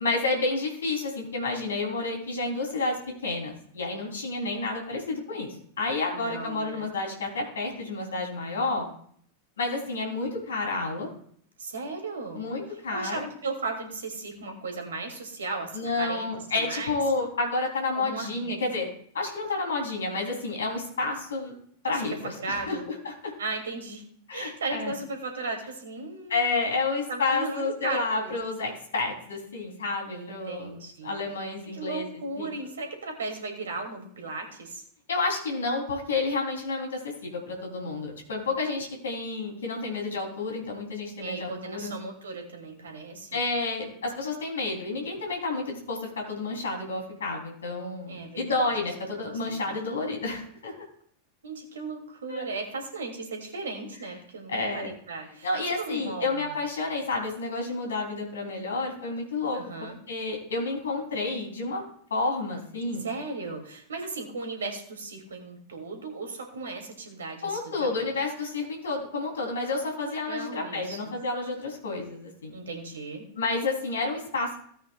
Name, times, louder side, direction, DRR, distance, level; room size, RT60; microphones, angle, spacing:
voice 1, 0.0-8.8 9.6-11.1 12.3-13.3 15.7-18.9 19.1-21.5 21.8-22.8 23.0-23.3 24.3-24.9 26.3-30.7 31.0-32.1 32.4-32.5 35.1-41.9 43.3-50.8 52.3-52.4 54.5-54.9 55.4-61.8 62.1-63.0 67.4-72.5 73.4-74.6, left 3 dB, 65° left, 1 dB, 3.3 m, -30 dB
voice 2, 6.1-6.9 11.6-12.5 12.9-17.0 17.9-18.7 21.9-22.9 23.4-24.0 24.3-26.5 27.1-28.4 30.1-31.2 31.6-34.8 41.2-43.4 48.1-48.7 49.2-49.7 51.4-55.5 55.8-56.6 59.5-60.0 63.0-68.1 70.0-71.1 72.5-73.3, right 3 dB, 65° right, 3 dB, 2.7 m, -36 dB
17.5 x 8.9 x 2.4 m, 0.62 s
figure-of-eight pair, 90°, 0 cm